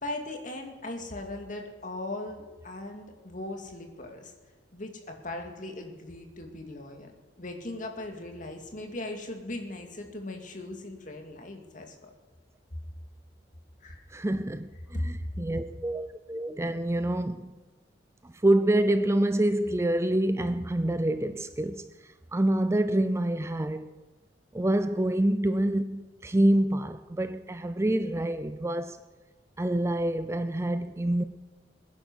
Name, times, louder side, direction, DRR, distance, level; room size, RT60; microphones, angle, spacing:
voice 1, 0.0-4.3 4.7-7.1 7.4-12.1 13.8-14.0 14.9-15.4, left 1 dB, 45° left, 2.3 m, -38 dB
voice 2, 14.1-17.5 18.2-23.9 24.5-29.0 29.6-31.2, right 1 dB, 15° right, 0.4 m, -27 dB
21.5 x 10.5 x 6.3 m
head